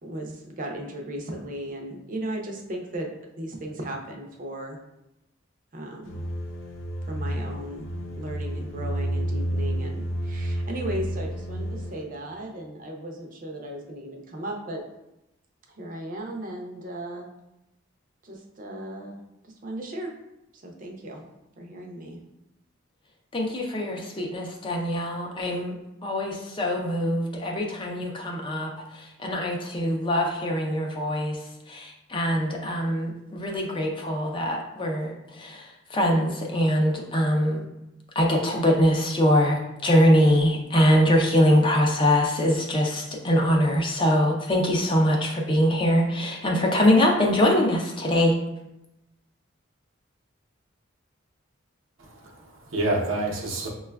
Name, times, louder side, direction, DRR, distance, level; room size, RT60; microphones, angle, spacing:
voice 1, 0.0-3.1 3.4-4.8 5.7-6.2 7.1-7.9 8.2-14.8 15.7-17.3 18.2-19.2 19.4-20.1 20.5-21.2 21.6-22.2, right 1 dB, 40° right, 1 dB, 0.6 m, -36 dB
sound 1, 6.0-12.0, right 1 dB, 70° left, 0.6 m, -30 dB
voice 2, 23.3-25.8 26.0-31.4 31.7-37.6 38.2-48.4, equal, 25° left, 0 dB, 0.4 m, -23 dB
voice 3, 52.0-53.7, right 2 dB, 80° right, -1 dB, 0.7 m, -28 dB
5.8 x 2.3 x 2.2 m, 0.90 s
head